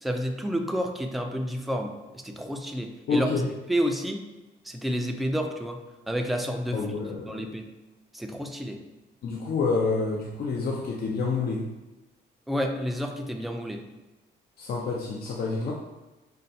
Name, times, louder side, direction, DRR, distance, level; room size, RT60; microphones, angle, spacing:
voice 1, 0.0-4.2 4.6-5.8 6.1-6.9 7.3-7.7 8.1-8.8 12.5-13.8, equal, ahead, 3 dB, 0.4 m, -30 dB
voice 2, 3.1-3.5 6.7-7.4 9.2-11.7 14.6-15.7, left 4 dB, 50° left, -2 dB, 0.5 m, -28 dB
5.1 x 2.2 x 2.8 m, 1.1 s
cardioid pair, 90°, 20 cm